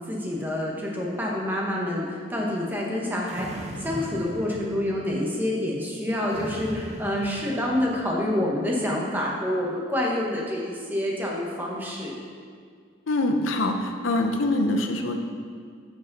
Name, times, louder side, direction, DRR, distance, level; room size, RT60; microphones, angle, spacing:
voice 1, 0.1-12.2, left 1 dB, 10° right, -3 dB, 1.1 m, -27 dB
sound 1, 3.3-5.1 6.3-8.1, right 1 dB, 35° right, 0.6 m, -38 dB
voice 2, 13.1-15.2, left 2 dB, 80° left, 5 dB, 0.7 m, -24 dB
10.5 x 4.8 x 4.0 m, 2.1 s
head